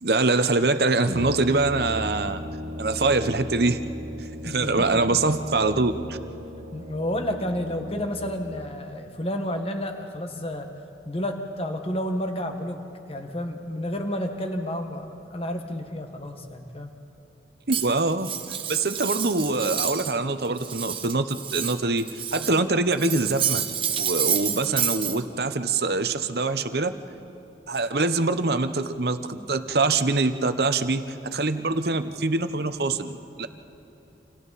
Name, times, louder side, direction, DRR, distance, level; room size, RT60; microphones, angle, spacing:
voice 1, 0.0-2.4 2.8-3.9 4.4-6.2 17.7-18.3 18.7-23.7 24.0-27.0 27.7-33.5, right 3 dB, 60° right, 10 dB, 0.9 m, -24 dB
Brass instrument, 1.0-8.5, left 1 dB, 85° right, 1.3 m, -37 dB
voice 2, 4.4-5.3 6.7-10.7 11.0-16.9, equal, 30° left, 4 dB, 1.6 m, -31 dB
Cutlery silverware, 17.7-20.2 20.4-22.6 22.9-25.2, right 9 dB, 30° right, 1.0 m, -29 dB
29.0 x 27.5 x 4.2 m, 2.8 s
head